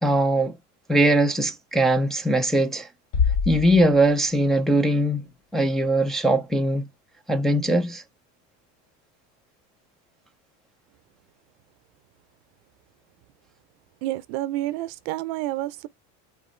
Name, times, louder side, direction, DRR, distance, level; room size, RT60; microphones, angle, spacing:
voice 1, 0.0-0.6 0.9-2.9 3.5-6.9 7.3-8.0, right 1 dB, ahead, 0.5 m, -21 dB
Bass drum, 3.1-4.6, left 6 dB, 70° left, 2.9 m, -25 dB
voice 2, 14.0-15.9, right 15 dB, 70° right, 0.7 m, -29 dB
7.9 x 3.1 x 4.3 m
cardioid pair, 165°, 32 cm